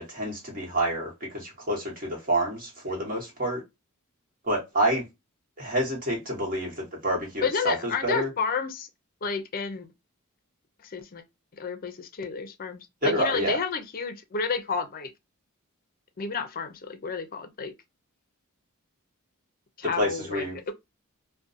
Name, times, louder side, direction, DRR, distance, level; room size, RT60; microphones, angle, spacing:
voice 1, 0.0-3.6 4.5-5.1 5.6-8.3 13.0-13.6 20.0-20.7, right 1 dB, 40° right, 1.2 m, -28 dB
voice 2, 7.4-8.9 9.2-9.9 10.8-11.2 11.6-15.1 16.2-17.7 19.8-20.7, left 5 dB, 40° left, 0.5 m, -31 dB
2.6 x 2.1 x 2.5 m
head